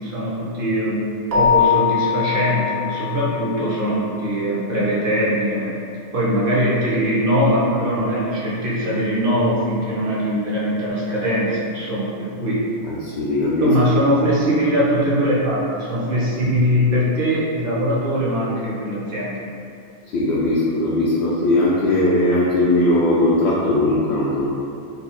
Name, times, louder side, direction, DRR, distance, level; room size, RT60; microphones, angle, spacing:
voice 1, 0.0-5.8 6.1-12.7 13.6-19.4, equal, 50° right, -7 dB, 1.0 m, -21 dB
Keyboard (musical), 1.3-3.8, left 9 dB, 65° right, 0.4 m, -21 dB
voice 2, 12.9-13.7 20.1-24.5, left 1 dB, 70° left, -7 dB, 0.9 m, -19 dB
3.9 x 2.3 x 4.0 m, 2.6 s
omnidirectional pair, 1.2 m